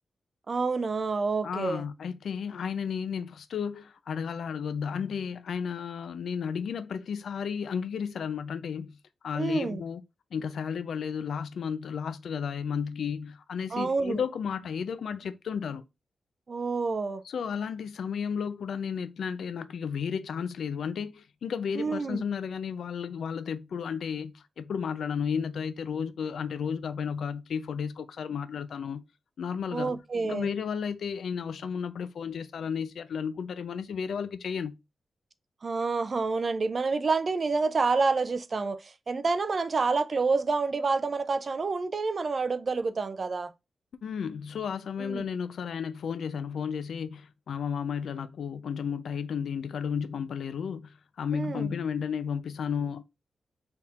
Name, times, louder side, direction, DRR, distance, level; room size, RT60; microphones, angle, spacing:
voice 1, 0.5-1.8 9.4-9.8 13.7-14.2 16.5-17.2 21.7-22.2 29.7-30.5 35.6-43.5 45.0-45.3 51.3-51.7, right 4 dB, 35° right, 0.4 m, -28 dB
voice 2, 1.4-8.9 9.2-10.0 10.3-15.8 17.2-29.0 29.4-30.0 30.2-34.7 44.0-53.0, left 7 dB, 70° left, 0.4 m, -33 dB
4.3 x 3.5 x 2.4 m
wide cardioid pair, 175°, 0 cm